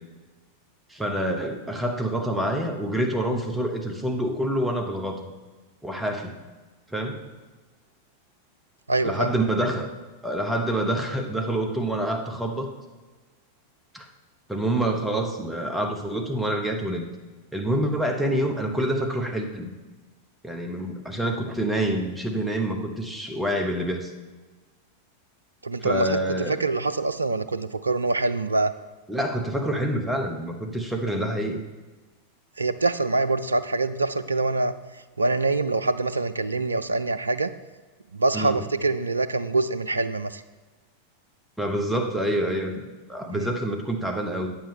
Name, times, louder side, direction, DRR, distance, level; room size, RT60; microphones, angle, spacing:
voice 1, 0.9-5.3 5.8-6.4 6.9-7.2 9.0-9.9 10.2-12.7 13.9-14.1 14.5-17.0 17.5-19.7 20.4-24.1 25.8-26.6 29.1-31.6 38.3-38.6 41.6-44.5, right 1 dB, 5° right, 3 dB, 0.9 m, -27 dB
voice 2, 8.9-9.3 25.6-26.2 26.5-28.7 32.6-34.7 35.2-37.5 38.1-40.4 43.3-43.5, right 3 dB, 80° right, 14 dB, 0.3 m, -25 dB
8.8 x 7.1 x 3.2 m, 1.3 s
figure-of-eight pair, 90°, 0 cm